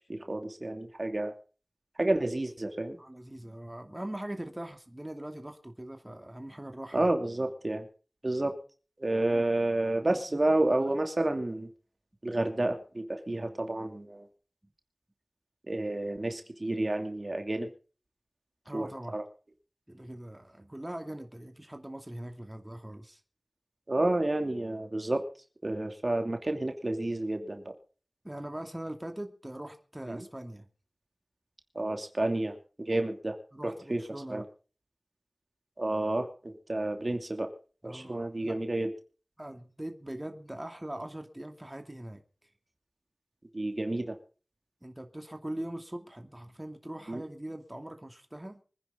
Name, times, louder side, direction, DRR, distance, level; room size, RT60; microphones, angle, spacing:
voice 1, 0.1-1.3 2.0-3.0 6.9-7.9 8.2-8.5 9.0-11.7 12.2-14.3 15.7-17.7 18.7-19.2 23.9-25.2 25.6-27.7 30.1-30.2 31.7-33.4 33.6-34.0 34.3-34.4 35.8-37.5 37.8-38.9 43.5-44.2 47.1-47.2, right 2 dB, 45° right, 5 dB, 2.7 m, -30 dB
voice 2, 3.0-7.1 10.0-10.6 10.9-11.0 18.6-19.2 19.9-23.2 28.2-30.7 33.5-34.5 37.8-38.6 39.4-42.2 44.8-48.6, right 1 dB, 20° right, 4 dB, 2.6 m, -41 dB
25.0 x 10.5 x 3.8 m, 0.39 s
wide cardioid pair, 45°, 0 cm